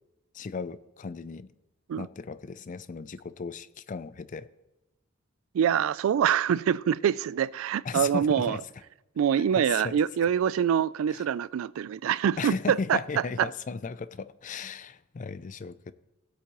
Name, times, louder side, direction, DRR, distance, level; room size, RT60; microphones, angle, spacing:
voice 1, 0.3-1.5 2.0-4.5 7.8-8.6 9.4-10.0 11.1-11.2 12.4-15.9, left 5 dB, 40° left, 0.4 m, -36 dB
voice 2, 5.5-8.6 9.2-13.0, right 8 dB, 90° right, 0.3 m, -25 dB
16.5 x 8.2 x 3.0 m
head